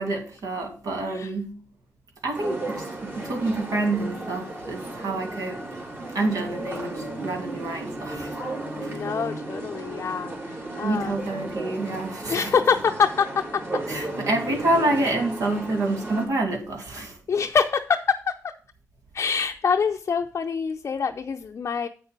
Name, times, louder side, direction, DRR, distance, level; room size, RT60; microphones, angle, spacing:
voice 1, 0.0-1.6 2.2-5.6 6.1-8.4 8.8-9.0 10.8-12.5 13.9-17.2, right 2 dB, 70° right, 2.6 m, -27 dB
sound 1, 2.3-16.3, right 2 dB, 40° right, 3.4 m, -34 dB
voice 2, 8.8-11.1 12.3-13.8 17.3-18.3 19.1-21.9, left 6 dB, 50° left, 0.6 m, -25 dB
8.3 x 6.6 x 4.8 m
cardioid pair, 80°, 6 cm